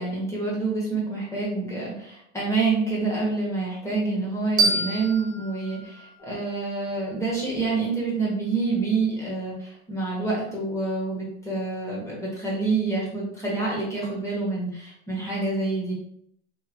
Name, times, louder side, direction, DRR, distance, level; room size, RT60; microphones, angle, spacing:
voice 1, 0.0-15.9, right 3 dB, 10° left, -5 dB, 1.1 m, -27 dB
sound 1, 4.6-7.4, right 3 dB, 10° right, 0.3 m, -28 dB
3.1 x 2.7 x 2.5 m, 0.69 s
hypercardioid pair, 125°, 37 cm